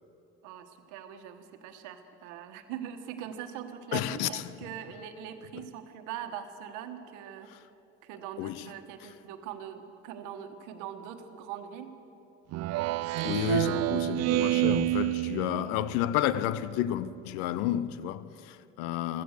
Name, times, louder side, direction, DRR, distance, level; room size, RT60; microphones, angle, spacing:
voice 1, 0.4-7.5 8.0-11.9, right 9 dB, 80° right, 1.3 m, -42 dB
voice 2, 3.9-4.4 8.4-8.7 13.2-19.2, left 12 dB, 85° left, 0.6 m, -31 dB
Speech synthesizer, 12.5-16.0, right 17 dB, 55° right, 0.4 m, -28 dB
16.0 x 13.5 x 6.5 m
supercardioid pair, 70°, 31 cm